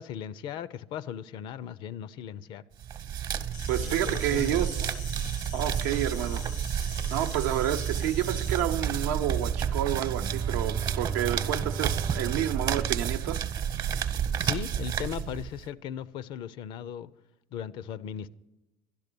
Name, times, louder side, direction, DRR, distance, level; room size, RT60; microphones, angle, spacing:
voice 1, 0.0-2.6 3.8-4.6 14.4-17.1 17.5-18.3, left 9 dB, 60° left, 0.5 m, -37 dB
sound 1, 2.8-15.7, right 8 dB, 50° right, 0.9 m, -30 dB
Insect, 3.5-8.6, left 8 dB, 85° left, 1.0 m, -46 dB
voice 2, 3.7-5.0 5.5-6.4 7.1-13.4, right 11 dB, 85° right, 0.7 m, -29 dB
Bowed string instrument, 10.2-14.1, right 4 dB, 30° right, 0.5 m, -38 dB
12.0 x 10.5 x 6.8 m
supercardioid pair, 95°, 9 cm